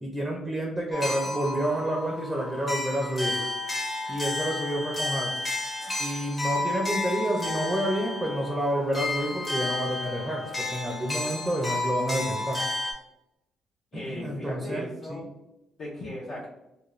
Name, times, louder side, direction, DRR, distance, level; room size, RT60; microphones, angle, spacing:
voice 1, 0.0-3.4 4.1-5.3 5.8-12.6 13.9-15.2, right 1 dB, 15° right, 0 dB, 0.5 m, -29 dB
sound 1, 0.9-12.9, left 2 dB, 25° left, 0.7 m, -32 dB
voice 2, 13.9-15.2 15.8-16.5, left 1 dB, 60° left, -6 dB, 0.7 m, -37 dB
2.4 x 2.2 x 3.0 m, 0.90 s
cardioid pair, 90°, 0 cm